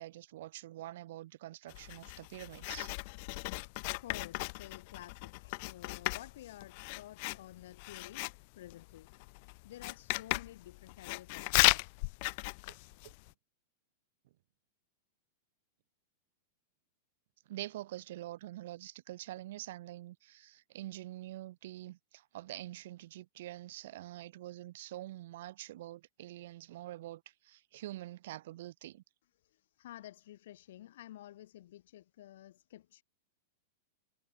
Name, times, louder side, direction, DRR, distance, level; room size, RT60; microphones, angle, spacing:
voice 1, 0.0-2.9 13.0-13.1 17.5-29.0, right 15 dB, 60° right, 2.0 m, -46 dB
Writing, 1.7-13.3, left 30 dB, 40° left, 0.4 m, -36 dB
voice 2, 3.9-9.1 9.6-11.9 29.4-33.0, left 13 dB, 65° left, 3.6 m, -51 dB
supercardioid pair, 165°, 0 cm